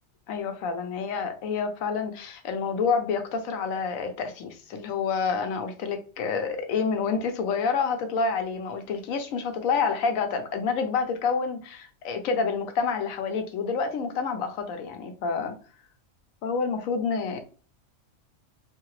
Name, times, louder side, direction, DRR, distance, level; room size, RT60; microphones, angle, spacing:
voice 1, 0.3-15.5 16.4-17.4, left 5 dB, 80° left, 1.1 m, -28 dB
2.8 x 2.7 x 3.0 m
omnidirectional pair, 1.4 m